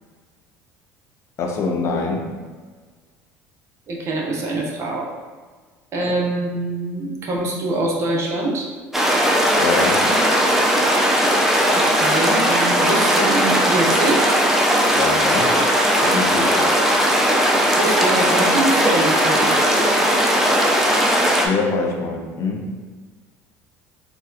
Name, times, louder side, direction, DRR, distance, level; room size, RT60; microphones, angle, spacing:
voice 1, 1.4-2.3 9.6-10.1 14.9-15.6 16.0-16.8 21.4-22.6, left 4 dB, 45° left, 2 dB, 0.6 m, -24 dB
voice 2, 3.9-5.1 5.9-8.7 11.7-14.3 17.8-19.7, right 2 dB, 45° right, -2 dB, 0.7 m, -24 dB
sound 1, 8.9-21.5, equal, 5° right, 0.4 m, -18 dB
4.0 x 2.2 x 2.6 m, 1.4 s
supercardioid pair, 110°, 7 cm